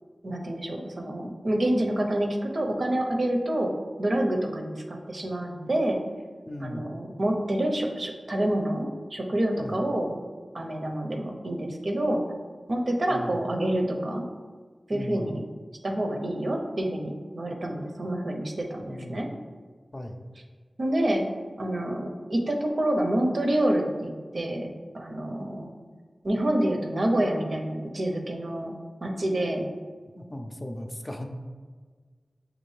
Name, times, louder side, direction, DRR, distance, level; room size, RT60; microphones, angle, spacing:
voice 1, 0.2-6.0 6.6-10.2 10.5-12.2 12.7-14.2 14.9-15.4 15.8-19.3 20.8-21.3 21.6-24.7 24.9-25.7 26.2-29.7, right 1 dB, 65° right, 2 dB, 0.6 m, -27 dB
voice 2, 6.5-6.8 9.6-9.8 13.1-13.4 14.9-15.3 18.8-19.2 19.9-20.2 30.1-31.3, left 1 dB, 35° left, 3 dB, 0.4 m, -37 dB
6.4 x 2.5 x 3.2 m, 1.5 s
wide cardioid pair, 50°, 0 cm